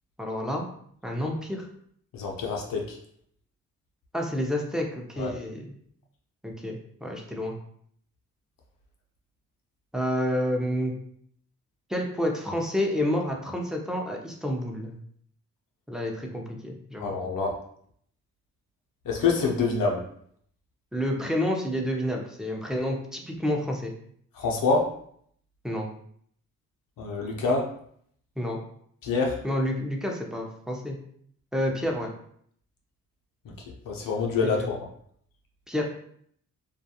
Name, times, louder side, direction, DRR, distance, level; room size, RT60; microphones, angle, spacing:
voice 1, 0.2-0.7 1.0-1.7 4.1-5.7 6.4-7.6 9.9-10.9 11.9-15.0 15.9-17.1 20.9-23.9 25.6-25.9 28.4-28.6 29.4-31.0 31.5-32.1 34.4-34.7 35.7-35.8, equal, ahead, 0 dB, 0.6 m, -29 dB
voice 2, 2.1-3.0 5.2-5.3 17.0-17.6 19.0-20.1 24.4-24.9 27.0-27.7 29.0-29.4 33.9-34.8, left 4 dB, 70° left, 0 dB, 0.6 m, -26 dB
2.3 x 2.2 x 2.7 m, 0.64 s
supercardioid pair, 45°, 35 cm